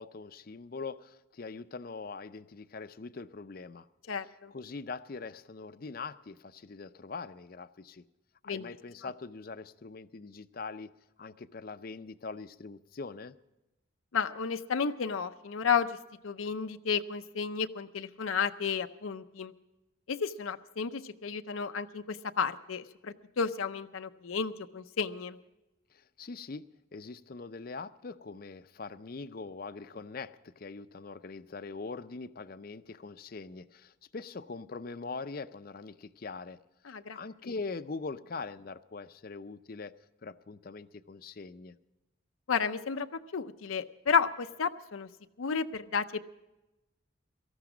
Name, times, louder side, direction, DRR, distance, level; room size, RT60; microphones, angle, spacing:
voice 1, 0.0-3.9 4.2-8.0 8.4-10.9 11.2-13.3 25.9-26.6 26.9-36.6 36.9-39.9 40.2-41.8, left 4 dB, 45° left, 14 dB, 0.5 m, -42 dB
voice 2, 4.1-4.5 8.5-8.8 14.1-15.9 16.2-19.5 20.1-25.4 36.9-37.2 42.5-43.1 43.3-45.1 45.4-46.3, left 6 dB, 85° left, 8 dB, 0.6 m, -32 dB
18.0 x 14.0 x 5.0 m, 0.98 s
head